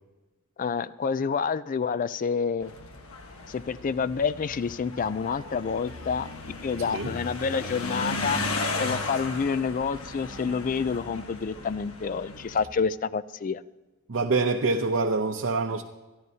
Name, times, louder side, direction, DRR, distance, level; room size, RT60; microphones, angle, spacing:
voice 1, 0.6-2.7 3.5-6.3 6.6-8.4 8.8-13.6, left 5 dB, 40° left, 0.3 m, -28 dB
sound 1, 2.6-12.7, left 2 dB, 85° left, 1.3 m, -35 dB
voice 2, 14.1-15.8, right 3 dB, 60° right, 0.7 m, -25 dB
25.5 x 11.0 x 2.8 m
head